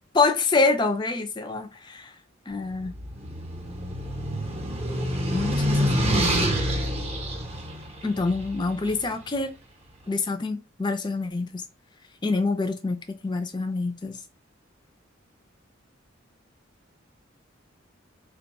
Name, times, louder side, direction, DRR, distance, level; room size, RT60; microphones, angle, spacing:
voice 1, 0.1-2.1 2.5-2.9 5.3-6.5 8.0-9.5 10.1-11.6 12.2-14.2, left 3 dB, 20° left, 0.4 m, -26 dB
sound 1, 2.8-9.0, equal, 30° right, 0.7 m, -27 dB
3.0 x 2.2 x 4.0 m
head